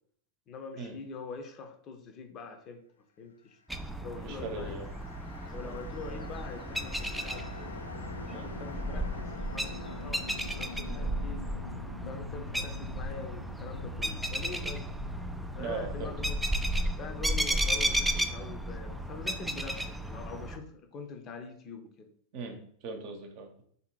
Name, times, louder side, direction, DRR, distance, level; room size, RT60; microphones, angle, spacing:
voice 1, 0.5-2.8 3.2-3.6 4.0-4.8 5.5-7.7 8.3-10.2 10.6-11.5 12.1-14.9 15.5-16.7 17.0-22.1, left 4 dB, 30° left, 6 dB, 0.6 m, -44 dB
sound 1, 3.7-20.6, right 1 dB, 5° right, 0.3 m, -34 dB
sound 2, 4.0-19.2, left 3 dB, 75° left, 0.4 m, -45 dB
voice 2, 4.2-4.9 5.6-5.8 8.3-8.5 10.9-11.0 15.6-16.1 22.3-23.5, right 4 dB, 45° right, 4 dB, 0.8 m, -40 dB
3.7 x 2.8 x 4.5 m, 0.63 s
figure-of-eight pair, 90°, 0 cm